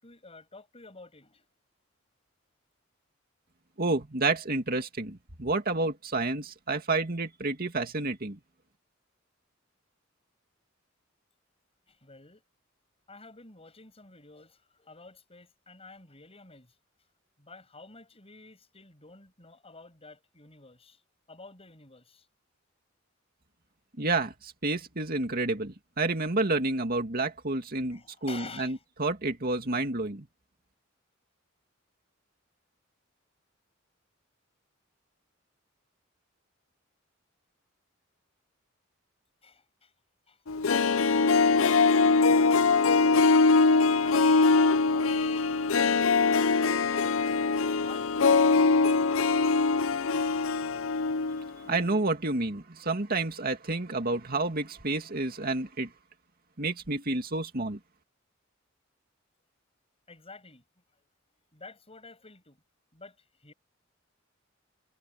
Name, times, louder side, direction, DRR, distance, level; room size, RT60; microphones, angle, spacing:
voice 1, 0.0-1.5 11.9-12.4 13.1-16.7 17.4-21.0 21.3-22.3 27.9-28.8 39.4-39.9 40.3-42.5 42.8-47.2 47.5-49.1 60.1-60.6 61.5-62.6 62.9-63.5, left 3 dB, 30° left, 7.1 m, -50 dB
voice 2, 3.8-8.4 24.0-30.3 51.7-55.9 56.6-57.8, right 2 dB, 50° right, 2.4 m, -30 dB
Harp, 40.5-51.5 51.8-51.9, left 4 dB, 90° left, 0.7 m, -23 dB
head